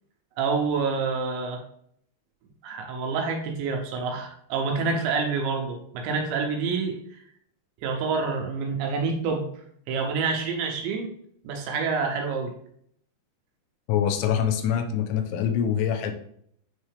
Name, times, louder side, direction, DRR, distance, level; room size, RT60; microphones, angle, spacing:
voice 1, 0.4-1.6 2.6-7.0 7.8-9.5 9.9-11.1 11.4-12.5, right 4 dB, 80° right, 2 dB, 2.9 m, -27 dB
voice 2, 13.9-16.1, left 9 dB, 85° left, 7 dB, 3.1 m, -24 dB
9.1 x 3.3 x 3.3 m, 0.67 s
omnidirectional pair, 5.5 m